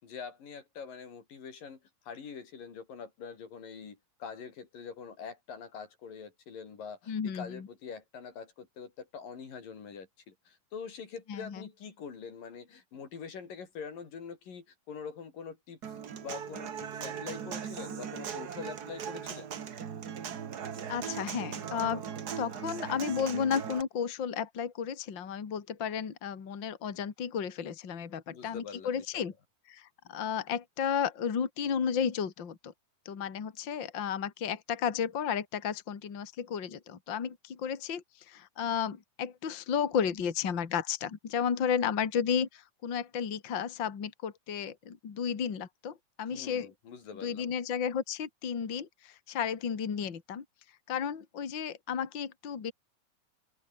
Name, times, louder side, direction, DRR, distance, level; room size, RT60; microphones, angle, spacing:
voice 1, 0.0-15.9 16.2-19.5 28.3-29.2 46.3-47.5, left 6 dB, 80° left, 5.7 m, -44 dB
voice 2, 7.1-7.7 11.3-11.6 20.9-22.0 22.4-29.3 29.7-32.7 33.1-46.7 47.2-50.4 50.9-52.7, left 7 dB, 40° left, 2.7 m, -33 dB
Human voice / Acoustic guitar, 15.8-23.8, right 8 dB, 55° right, 1.0 m, -39 dB
open air
omnidirectional pair, 3.8 m